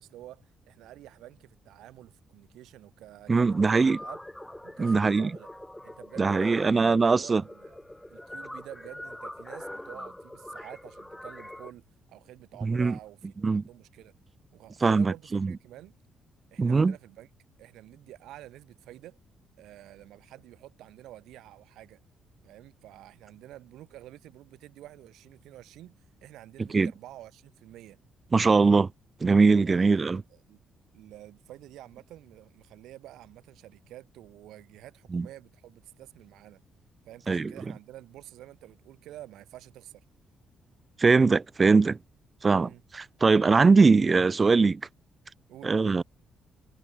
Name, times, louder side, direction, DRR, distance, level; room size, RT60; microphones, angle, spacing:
voice 1, 0.0-4.2 4.6-5.5 5.8-7.8 8.1-14.1 14.5-16.0 16.5-17.3 17.6-19.2 19.6-22.0 22.4-25.9 26.2-28.0 28.5-28.8 29.6-30.6 30.9-36.6 37.1-40.0 42.6-42.8 45.5-45.8, right 14 dB, 85° right, 7.3 m, -49 dB
voice 2, 3.3-4.0 4.8-5.3 6.2-7.4 12.6-12.9 13.4-13.6 14.8-15.5 16.6-16.9 26.7-26.9 28.3-28.9 29.2-30.2 35.1-35.3 37.3-37.5 41.0-42.0 42.4-44.8 45.6-46.0, right 4 dB, 30° right, 0.9 m, -21 dB
sound 1, 3.5-11.7, left 1 dB, 5° left, 1.1 m, -42 dB
cardioid pair, 90°, 0 cm